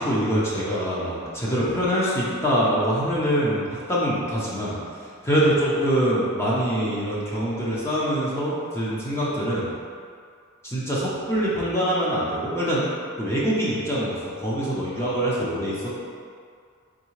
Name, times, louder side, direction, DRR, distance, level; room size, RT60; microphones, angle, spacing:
voice 1, 0.0-4.8 5.2-9.7 10.6-12.8 13.2-15.9, equal, 10° left, -8 dB, 0.7 m, -24 dB
3.7 x 3.3 x 3.1 m, 2.2 s
head